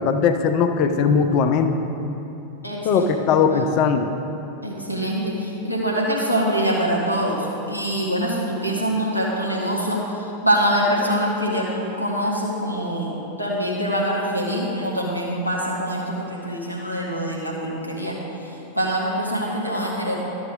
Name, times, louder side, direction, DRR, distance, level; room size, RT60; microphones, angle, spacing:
voice 1, 0.0-1.8 2.8-4.1, left 6 dB, 40° left, 7 dB, 0.5 m, -19 dB
voice 2, 2.6-3.1 3.5-3.6 4.6-18.2 18.4-20.1, equal, 90° right, -4 dB, 1.4 m, -24 dB
12.0 x 7.0 x 3.8 m, 2.9 s
figure-of-eight pair, 90°, 0 cm